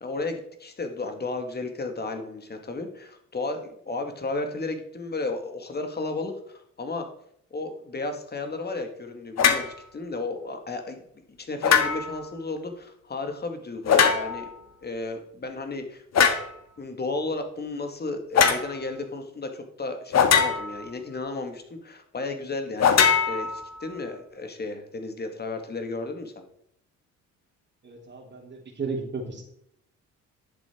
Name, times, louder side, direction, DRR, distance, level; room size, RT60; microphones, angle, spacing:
voice 1, 0.0-7.1 7.5-11.0 11.4-14.5 14.8-16.0 16.8-26.4, left 3 dB, 35° left, 6 dB, 2.1 m, -33 dB
sound 1, 9.4-9.7 11.6-12.2 13.9-14.5 16.1-16.5 18.3-18.6 20.1-20.9 22.8-23.9, left 7 dB, 60° left, 1.7 m, -21 dB
voice 2, 27.8-29.4, right 4 dB, 35° right, 0 dB, 3.4 m, -34 dB
11.0 x 7.4 x 4.6 m, 0.70 s
cardioid pair, 90°, 30 cm